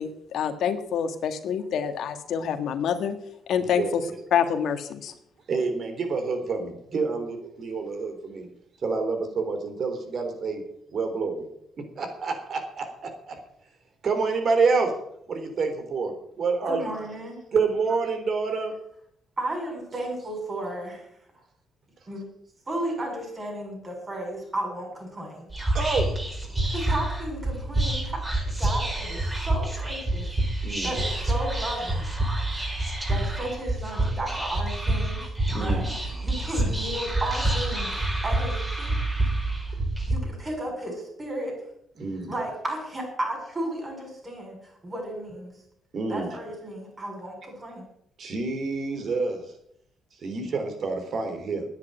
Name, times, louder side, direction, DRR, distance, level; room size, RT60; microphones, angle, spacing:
voice 1, 0.0-3.2 3.5-4.0 4.3-5.1, left 8 dB, 75° left, 8 dB, 1.6 m, -26 dB
voice 2, 3.6-3.9 5.5-8.5 8.8-10.6 10.9-11.4 12.0-12.8 13.3-13.4 14.0-14.9 15.3-16.8 17.5-18.7 25.7-26.1 30.6-30.9 35.5-35.9 42.0-42.4 45.9-46.3 48.2-49.4 50.2-51.6, right 4 dB, 55° right, 6 dB, 3.8 m, -27 dB
voice 3, 16.7-17.4 19.4-21.1 22.1-22.2 22.7-25.5 26.6-30.3 30.6-32.1 32.5-32.6 33.1-38.9 40.1-41.6 42.3-45.5 46.1-47.9, right 1 dB, 30° right, 1 dB, 7.3 m, -34 dB
Whispering, 25.5-40.1, right 2 dB, 15° right, 4.4 m, -27 dB
10.5 x 9.9 x 9.0 m, 0.73 s
cardioid pair, 90°, 0 cm